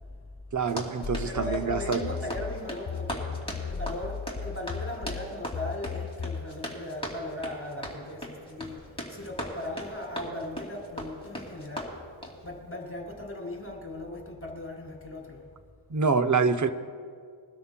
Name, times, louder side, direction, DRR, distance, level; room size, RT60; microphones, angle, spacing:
voice 1, 0.5-2.1 15.9-16.7, right 5 dB, 40° right, 10 dB, 0.6 m, -26 dB
Run, 0.6-12.4, equal, 10° left, 2.3 m, -39 dB
sound 1, 1.0-6.5, left 6 dB, 65° left, 1.3 m, -36 dB
voice 2, 1.2-3.3 3.6-12.0 12.4-15.4, left 1 dB, 30° left, 0 dB, 2.5 m, -38 dB
22.0 x 12.5 x 2.2 m, 2.1 s
wide cardioid pair, 60°, 48 cm